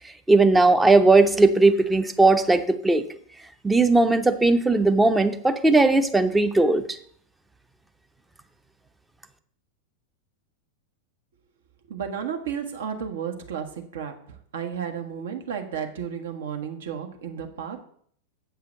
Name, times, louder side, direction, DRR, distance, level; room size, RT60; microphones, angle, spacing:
voice 1, 0.3-3.1 3.6-6.9, right 3 dB, 10° right, 9 dB, 0.7 m, -18 dB
voice 2, 11.9-17.8, right 7 dB, 60° right, 5 dB, 1.3 m, -33 dB
8.1 x 5.5 x 6.6 m, 0.62 s
figure-of-eight pair, 90°, 0 cm